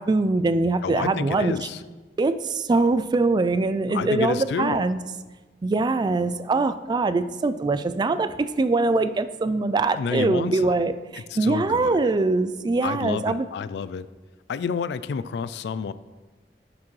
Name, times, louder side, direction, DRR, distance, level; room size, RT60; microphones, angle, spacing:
voice 1, 0.0-1.5 2.2-5.0 5.6-13.5, right 3 dB, 25° right, 13 dB, 0.3 m, -23 dB
voice 2, 0.8-1.8 3.9-4.9 9.9-10.8 11.3-12.0 12.8-14.1 14.5-15.9, left 6 dB, 70° left, 15 dB, 0.3 m, -29 dB
10.5 x 6.0 x 3.2 m, 1.2 s
head